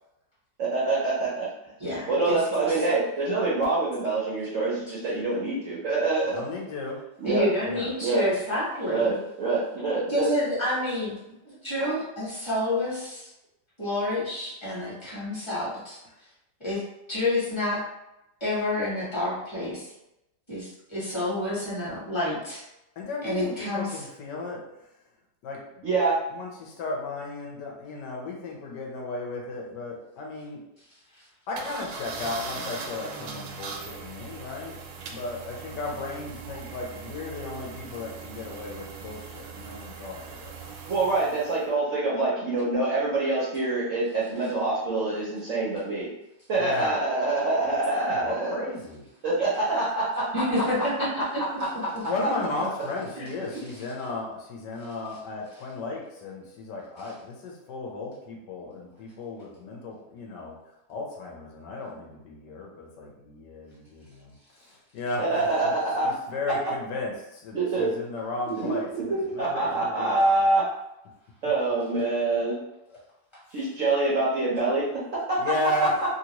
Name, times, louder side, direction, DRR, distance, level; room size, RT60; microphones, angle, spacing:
voice 1, 0.6-1.5 2.1-6.4 7.2-7.4 8.0-8.2 8.9-10.3 11.8-11.9 25.8-26.2 40.9-46.1 46.5-48.6 49.2-50.3 65.2-66.1 67.5-67.9 68.5-70.7 71.4-72.6 73.5-75.4, right 3 dB, 60° right, -7 dB, 0.8 m, -25 dB
voice 2, 1.8-2.8 7.2-9.1 10.1-11.1 11.4-13.3 13.8-16.0 16.6-16.8 17.1-17.8 18.4-19.9 20.5-22.6 23.2-24.0 50.3-51.4 53.2-53.3, left 1 dB, 15° left, -9 dB, 1.2 m, -29 dB
voice 3, 6.3-7.0 7.6-7.9 23.0-24.6 25.4-25.8 26.3-30.6 31.5-34.8 35.1-40.5 46.6-47.0 48.0-49.0 52.0-60.5 60.9-64.3 64.7-65.7 66.0-70.3 71.9-72.3 72.9-73.0 75.4-76.1, left 2 dB, 80° left, -1 dB, 1.3 m, -35 dB
sound 1, 31.6-41.7, right 5 dB, 80° right, 1.2 m, -40 dB
3.0 x 2.8 x 2.9 m, 0.90 s
omnidirectional pair, 1.9 m